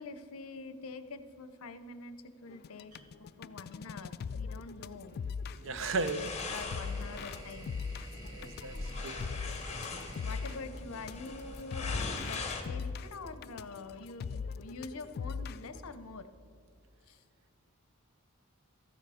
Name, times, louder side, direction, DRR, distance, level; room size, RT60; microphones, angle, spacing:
voice 1, 0.0-2.9 3.2-5.2 5.6-7.8 10.2-16.3 17.1-17.2, left 3 dB, 70° left, 11 dB, 0.7 m, -45 dB
sound 1, 2.5-15.8, left 5 dB, 45° left, 0.3 m, -40 dB
sound 2, 2.9-3.0 5.1-12.1, equal, 80° right, 2.7 m, -51 dB
voice 2, 5.6-6.2 8.3-9.2, right 3 dB, 60° right, 11 dB, 0.7 m, -35 dB
sound 3, 5.7-12.6, left 3 dB, 30° left, 1.3 m, -41 dB
13.5 x 9.4 x 4.9 m, 2.6 s
head